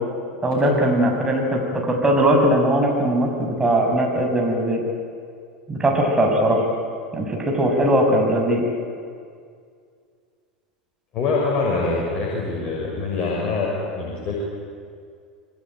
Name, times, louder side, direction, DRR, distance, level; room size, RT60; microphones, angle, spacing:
voice 1, 0.4-4.8 5.7-6.6 7.1-8.6, right 1 dB, 15° right, 1 dB, 6.7 m, -20 dB
voice 2, 11.1-14.4, left 3 dB, 35° left, -3 dB, 6.6 m, -24 dB
26.5 x 23.0 x 9.1 m, 2.2 s
figure-of-eight pair, 80°, 4 cm